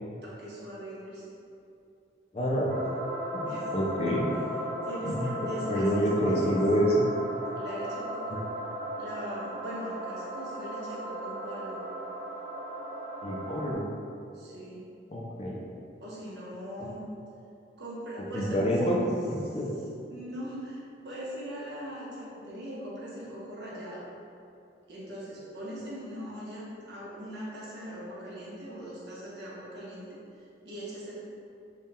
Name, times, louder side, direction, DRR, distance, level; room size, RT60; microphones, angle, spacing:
voice 1, 0.2-1.2 3.5-3.7 4.0-4.5 4.8-6.6 7.6-8.4 9.0-11.8 14.3-14.8 16.0-17.0 17.8-19.0 20.1-24.0 24.9-31.2, equal, 70° right, -7 dB, 1.0 m, -40 dB
voice 2, 2.3-2.7 3.3-4.2 5.1-5.3 5.7-7.1 13.2-13.9 15.1-15.6 18.3-19.0 19.5-19.7, equal, 35° left, -2 dB, 0.4 m, -27 dB
sound 1, 2.7-13.7, equal, 40° right, 0.4 m, -36 dB
3.6 x 2.3 x 4.2 m, 2.6 s
head